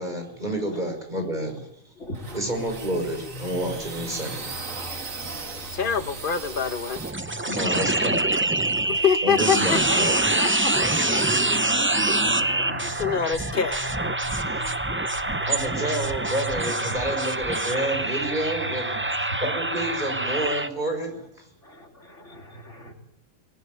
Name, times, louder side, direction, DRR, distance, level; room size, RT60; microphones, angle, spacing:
voice 1, 0.0-1.6 2.3-4.5 7.5-8.2 9.2-10.2 14.4-14.7 15.5-19.0 19.4-21.5, right 1 dB, 35° right, 4 dB, 5.9 m, -29 dB
voice 2, 2.0-2.5 4.9-6.2 7.5-7.9 8.7-9.1 10.3-10.4 10.7-13.4 14.2-15.9 16.8-17.6 18.0-18.1 18.6-19.4 21.6-22.9, left 1 dB, 65° left, 1 dB, 3.8 m, -43 dB
sound 1, 2.1-7.1, right 4 dB, 85° right, 2.3 m, -38 dB
sound 2, 2.3-20.5, right 2 dB, 15° left, 6.3 m, -42 dB
voice 3, 5.7-7.0 8.7-10.0 10.4-10.7 13.0-13.8 14.6-14.8, left 7 dB, 45° left, 9 dB, 1.3 m, -25 dB
sound 3, 7.0-20.7, right 2 dB, 10° right, 0.6 m, -25 dB
22.0 x 19.0 x 9.4 m, 0.87 s
omnidirectional pair, 1.3 m